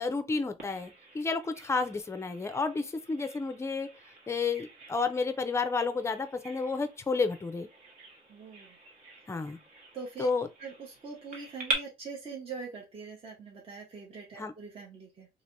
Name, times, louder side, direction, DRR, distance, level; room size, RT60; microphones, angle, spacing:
voice 1, 0.0-3.9 4.3-7.7 9.3-9.6 10.2-10.5 14.4-14.5, left 4 dB, 15° left, 0.5 m, -31 dB
Bird vocalization bird call bird song, 0.6-11.7, right 2 dB, 60° right, 1.5 m, -43 dB
voice 2, 8.3-8.8 9.9-10.3 10.6-15.3, right 5 dB, 35° right, 0.9 m, -43 dB
3.2 x 2.9 x 2.6 m
cardioid pair, 110°, 17 cm